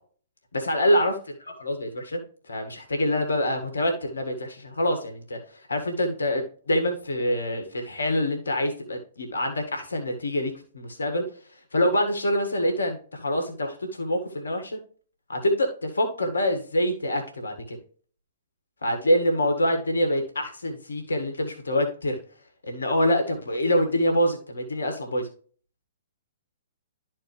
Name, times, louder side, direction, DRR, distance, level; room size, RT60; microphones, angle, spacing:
voice 1, 0.5-1.1 1.6-2.2 2.5-11.2 11.7-14.8 15.3-17.8 18.8-22.2 22.6-25.3, equal, 80° left, 5 dB, 1.7 m, -25 dB
12.0 x 4.3 x 3.2 m, 0.43 s
figure-of-eight pair, 120°, 0 cm